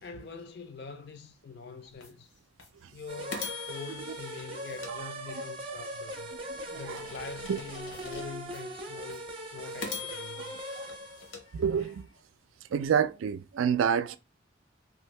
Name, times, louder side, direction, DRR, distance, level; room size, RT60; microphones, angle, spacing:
voice 1, 0.0-2.3 2.9-6.3 6.7-9.2 9.5-10.6, left 5 dB, 55° left, 0.4 m, -44 dB
sound 1, 2.0-2.1 2.6-2.7 3.3-5.7 6.2-8.6 9.1-9.2 9.8-12.2, left 6 dB, 85° left, 0.8 m, -43 dB
sound 2, 3.1-11.4, right 1 dB, 25° right, 0.6 m, -40 dB
voice 2, 10.4-10.9 11.5-12.1 12.7-14.2, right 7 dB, 85° right, 0.3 m, -29 dB
2.7 x 2.5 x 3.1 m
head